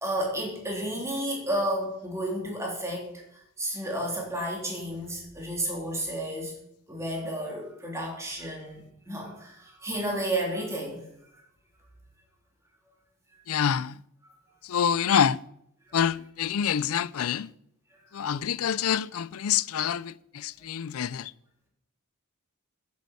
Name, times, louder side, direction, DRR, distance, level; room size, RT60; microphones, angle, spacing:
voice 1, 0.0-6.5 6.9-11.0 11.3-11.4 14.2-14.3 15.9-16.0 18.1-18.3, right 1 dB, 15° right, 3.4 m, -32 dB
voice 2, 13.5-14.0 14.6-15.4 15.9-17.5 18.1-21.3, left 8 dB, 75° left, 0.4 m, -26 dB
10.5 x 8.4 x 7.8 m
head